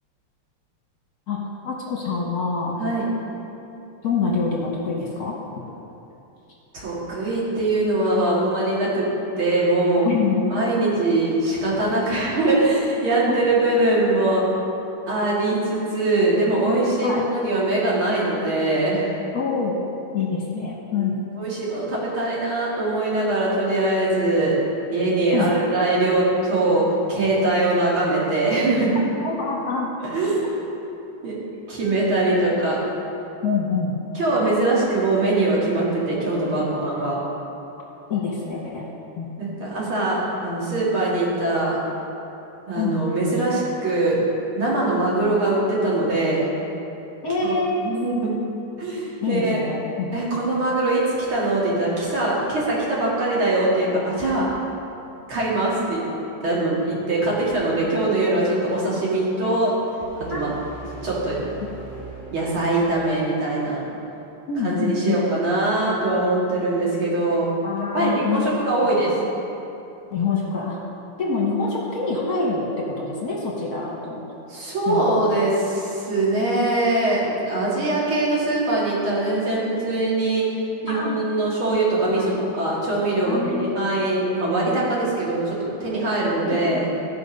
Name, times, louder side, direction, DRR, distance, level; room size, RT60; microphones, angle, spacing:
voice 1, 1.3-2.8 4.0-5.3 10.0-10.5 13.3-13.4 13.6-13.7 17.0-17.2 19.3-19.8 20.1-21.2 25.3-25.5 29.0-29.9 33.4-33.9 38.1-38.9 39.2-39.3 42.7-43.2 47.2-47.9 49.2-50.1 60.3-60.4 64.5-65.2 67.6-68.6 70.1-70.8 71.2-74.2 74.9-75.3 80.9-81.2 81.9-82.3 83.2-83.7 86.4-86.8, left 4 dB, 50° left, -3 dB, 1.6 m, -26 dB
voice 2, 6.7-9.1 9.4-10.1 10.5-14.5 15.1-19.1 20.9-21.1 21.4-24.6 24.9-29.0 30.0-30.4 31.2-31.4 31.7-32.8 34.1-37.2 39.4-41.8 42.7-44.2 44.5-46.5 47.4-48.3 48.8-49.6 50.1-51.0 51.3-54.5 55.3-56.0 56.4-59.7 60.2-60.5 61.0-61.4 62.3-63.8 64.6-67.5 67.9-69.1 74.5-80.5 80.8-86.9, right 2 dB, 70° right, -6 dB, 3.0 m, -22 dB
sound 1, 60.0-63.0, right 2 dB, 5° right, 1.5 m, -40 dB
14.0 x 5.4 x 5.3 m, 2.9 s
omnidirectional pair, 2.4 m